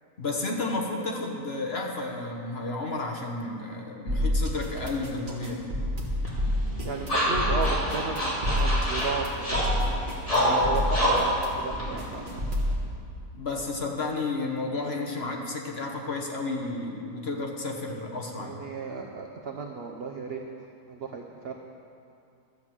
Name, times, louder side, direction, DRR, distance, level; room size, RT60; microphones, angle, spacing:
voice 1, 0.2-5.7 10.3-11.2 13.3-18.6, left 3 dB, 45° left, 1 dB, 1.3 m, -32 dB
sound 1, 4.1-12.8, left 1 dB, 30° right, 1.8 m, -29 dB
sound 2, 6.2-12.7, equal, 20° left, 2.7 m, -28 dB
voice 2, 6.8-9.7 10.3-10.8 11.2-11.3 11.6-12.4 18.3-20.4 20.9-21.5, right 5 dB, 50° right, 2 dB, 0.8 m, -34 dB
12.5 x 7.8 x 7.5 m, 2.6 s
omnidirectional pair, 1.7 m